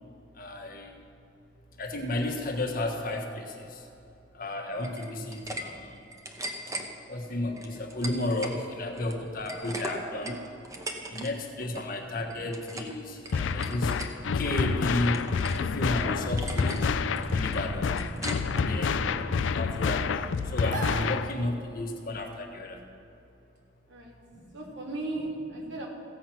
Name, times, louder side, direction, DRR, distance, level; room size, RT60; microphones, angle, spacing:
voice 1, 0.3-0.9 1.8-3.9 4.3-6.0 7.1-10.4 11.1-13.9 14.2-15.3 15.6-16.9 17.3-18.0 18.5-22.9 24.3-24.5, left 1 dB, 50° left, 2 dB, 1.4 m, -33 dB
sound 1, 4.8-5.6 6.0-6.9 7.6-8.6 8.9-11.3 11.6-11.9 12.3-13.0 13.2-14.1 14.6-15.7 16.0-16.1 16.4-16.9 17.2-18.6, right 1 dB, 15° right, 1.0 m, -39 dB
sound 2, 13.3-21.3, left 5 dB, 90° left, 0.4 m, -29 dB
sound 3, 14.2-21.7, right 1 dB, 45° right, 1.0 m, -39 dB
voice 2, 24.5-25.9, right 2 dB, 80° right, -2 dB, 2.5 m, -37 dB
15.5 x 7.6 x 6.0 m, 2.7 s
head